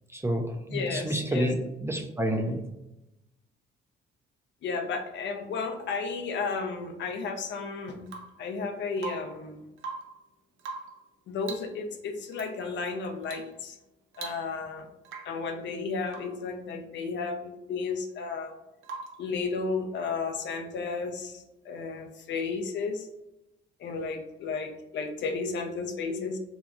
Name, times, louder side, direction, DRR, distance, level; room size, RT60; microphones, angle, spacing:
voice 1, 0.1-1.6 1.8-2.7, right 1 dB, 15° right, 2 dB, 0.3 m, -29 dB
voice 2, 0.7-1.6 4.6-8.1 8.4-9.6 11.3-13.8 14.2-14.9 15.3-18.5 19.2-23.1 23.8-26.4, left 4 dB, 65° left, 5 dB, 0.5 m, -33 dB
Rain / Water tap faucet / Drip, 8.1-8.4 9.0-9.4 9.7-10.2 10.6-11.0 11.4-11.8 12.3-12.5 13.2-13.5 13.8-13.9 14.1-14.7 15.0-15.4 16.1-16.4 18.8-19.3 21.2-21.3, right 4 dB, 80° right, 0.5 m, -41 dB
2.8 x 2.3 x 2.5 m, 0.92 s
cardioid pair, 90°, 20 cm